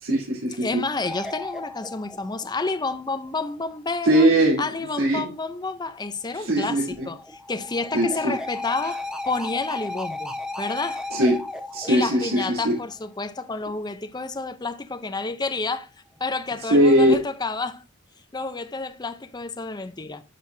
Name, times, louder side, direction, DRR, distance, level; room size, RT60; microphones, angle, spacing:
voice 1, 0.0-0.8 4.0-4.7 5.0-5.3 6.3-7.1 7.9-8.3 11.1-11.4 11.7-12.7 16.7-17.1, right 1 dB, 90° right, 3.5 m, -20 dB
voice 2, 0.6-4.3 4.6-11.1 11.9-15.9 16.2-17.8 18.3-20.2, left 3 dB, 20° left, 0.6 m, -30 dB
sound 1, 1.0-3.1 6.6-13.1 16.5-17.0, left 2 dB, 5° right, 0.9 m, -35 dB
10.0 x 5.6 x 2.7 m
head